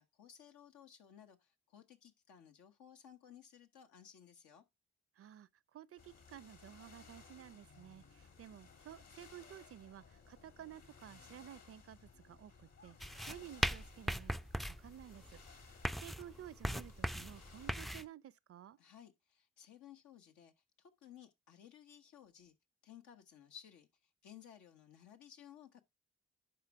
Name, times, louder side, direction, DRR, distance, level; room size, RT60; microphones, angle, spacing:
voice 1, 0.0-4.6 18.8-22.6 22.8-23.9 24.2-25.8, left 9 dB, 80° left, 1.1 m, -58 dB
voice 2, 5.2-15.7 16.0-18.8, right 11 dB, 50° right, 0.5 m, -54 dB
sound 1, 6.0-18.1, left 5 dB, 60° left, 2.2 m, -60 dB
sound 2, 13.0-18.0, equal, ahead, 0.3 m, -39 dB
10.5 x 4.3 x 3.5 m
supercardioid pair, 45°, 29 cm